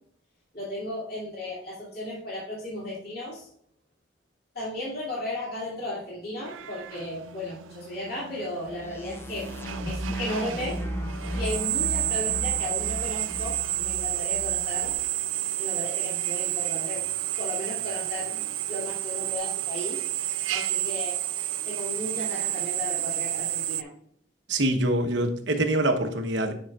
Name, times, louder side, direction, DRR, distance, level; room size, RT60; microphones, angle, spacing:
voice 1, 0.5-3.5 4.5-9.5 9.8-10.8 11.3-14.9 15.6-17.0 17.4-18.4 18.7-20.0 20.5-21.2 21.6-23.9, left 1 dB, 55° left, -5 dB, 2.5 m, -35 dB
Drill, 6.4-23.8, right 13 dB, 90° right, 0.4 m, -30 dB
sound 1, 8.7-14.9, right 1 dB, 10° left, 0.5 m, -35 dB
voice 2, 24.5-26.5, right 1 dB, 65° right, 5 dB, 1.0 m, -25 dB
10.0 x 5.7 x 2.4 m, 0.65 s
head